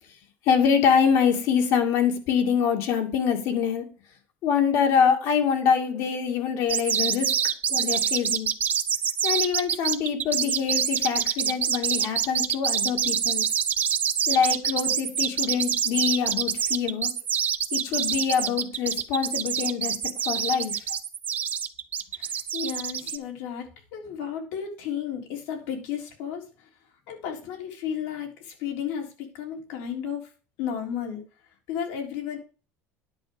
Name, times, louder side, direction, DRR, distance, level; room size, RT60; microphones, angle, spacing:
voice 1, 0.5-3.8 4.4-7.3 7.7-8.5 9.2-13.5 14.3-17.1 17.7-20.0 20.3-20.8, left 7 dB, 60° left, 4 dB, 2.3 m, -24 dB
sound 1, 6.7-23.2, right 8 dB, 30° right, 0.8 m, -26 dB
voice 2, 22.1-26.7 27.1-30.3 30.6-31.2 31.7-32.4, left 8 dB, 75° left, 2 dB, 3.7 m, -33 dB
10.5 x 4.8 x 8.1 m, 0.35 s
cardioid pair, 145°, 6 cm